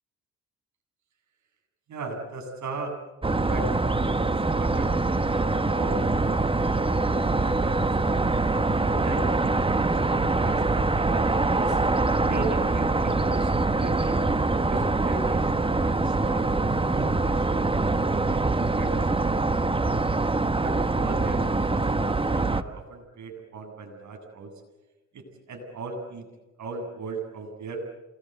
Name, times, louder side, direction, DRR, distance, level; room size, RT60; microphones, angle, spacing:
voice 1, 1.9-2.9 3.4-6.5 7.0-7.8 8.7-11.8 12.3-14.2 14.7-16.4 16.9-18.9 19.2-19.4 20.6-21.4 21.7-24.5 25.1-26.2 26.6-27.8, right 3 dB, 75° right, 3 dB, 7.9 m, -38 dB
sound 1, 3.2-22.6, right 3 dB, 20° right, 1.2 m, -24 dB
28.0 x 21.5 x 8.2 m, 1.1 s
cardioid pair, 75°, 29 cm